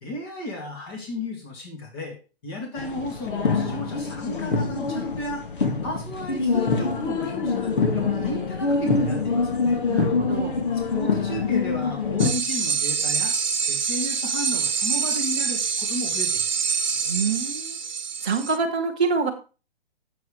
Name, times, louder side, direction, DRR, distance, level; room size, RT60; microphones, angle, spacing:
voice 1, 0.0-2.2 2.4-5.4 5.8-9.8 10.9-13.3 13.7-16.9, left 1 dB, 20° left, 0 dB, 2.4 m, -34 dB
sound 1, 2.8-12.3, left 4 dB, 55° left, 1.8 m, -25 dB
voice 2, 9.9-10.6 17.0-17.8 18.2-19.3, right 5 dB, 5° right, -5 dB, 0.5 m, -26 dB
sound 2, 12.2-18.6, right 6 dB, 45° right, 0.8 m, -26 dB
9.3 x 7.2 x 4.9 m, 0.34 s
hypercardioid pair, 175°, 32 cm